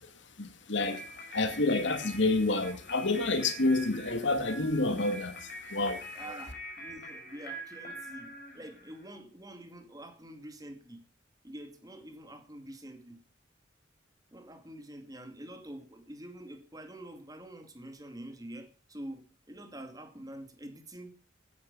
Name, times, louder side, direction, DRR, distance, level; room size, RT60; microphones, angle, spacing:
voice 1, 0.0-6.1, left 2 dB, 70° left, 2.3 m, -29 dB
sound 1, 0.8-9.1, equal, 50° left, 6.7 m, -45 dB
voice 2, 6.1-11.0 11.4-13.2 14.3-21.2, right 1 dB, 20° right, 2.5 m, -46 dB
16.5 x 10.0 x 5.5 m
head